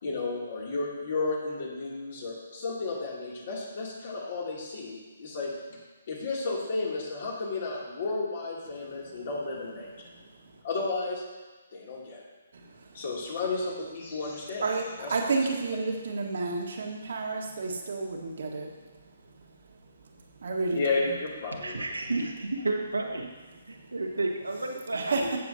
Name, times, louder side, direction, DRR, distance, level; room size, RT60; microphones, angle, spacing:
voice 1, 0.0-5.5 6.1-9.9 10.6-11.2 11.7-12.2 12.9-14.6 15.0-15.3 20.7-21.8, left 3 dB, 50° left, -3 dB, 2.9 m, -32 dB
voice 2, 12.5-13.0 14.6-18.7 20.4-21.1 24.9-25.2, right 3 dB, 60° right, 1 dB, 1.6 m, -31 dB
voice 3, 21.5-23.3 23.7-25.4, right 2 dB, 85° right, 1 dB, 1.5 m, -31 dB
16.0 x 6.7 x 2.8 m, 1.3 s
figure-of-eight pair, 135°, 0 cm